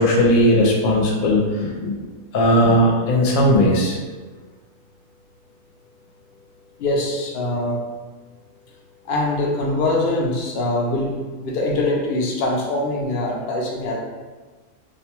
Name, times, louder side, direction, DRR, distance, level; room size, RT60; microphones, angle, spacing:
voice 1, 0.0-2.0 2.3-4.0, equal, 80° left, -1 dB, 1.0 m, -17 dB
voice 2, 6.8-7.8 9.1-14.0, left 2 dB, 60° left, -2 dB, 0.6 m, -23 dB
2.5 x 2.2 x 2.9 m, 1.4 s
omnidirectional pair, 1.4 m